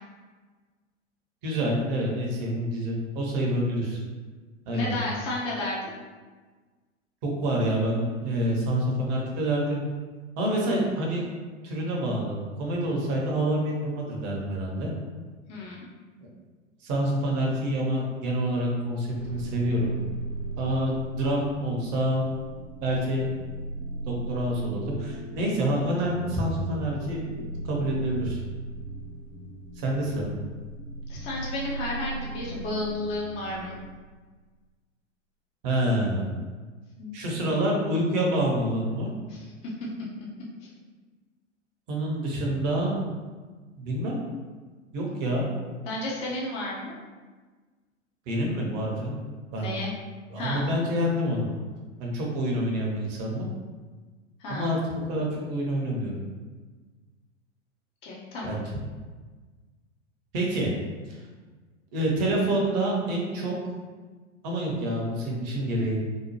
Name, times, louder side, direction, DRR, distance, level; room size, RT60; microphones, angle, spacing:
voice 1, 1.4-4.0 4.6-5.0 7.2-9.9 10.4-11.2 11.6-14.9 16.2-16.3 16.8-19.9 20.6-22.2 22.8-23.3 24.1-28.4 29.8-30.3 35.6-36.3 37.1-39.1 41.9-43.0 43.8-44.2 44.9-45.4 48.3-49.2 49.5-49.7 50.3-51.5 52.0-53.5 54.5-54.8 55.1-56.2 58.4-58.6 60.3-60.7 61.9-63.5 64.4-66.0, right 1 dB, 35° right, -2 dB, 0.7 m, -27 dB
voice 2, 4.7-5.9 15.5-15.9 31.1-33.7 37.0-37.1 39.3-39.7 40.6-40.7 45.9-47.0 49.6-49.9 50.4-50.6 54.4-54.7 58.0-58.6, left 2 dB, 15° left, -4 dB, 0.4 m, -32 dB
sound 1, 19.0-33.9, right 2 dB, 75° left, 1.0 m, -38 dB
2.8 x 2.0 x 2.9 m, 1.4 s
figure-of-eight pair, 100°, 38 cm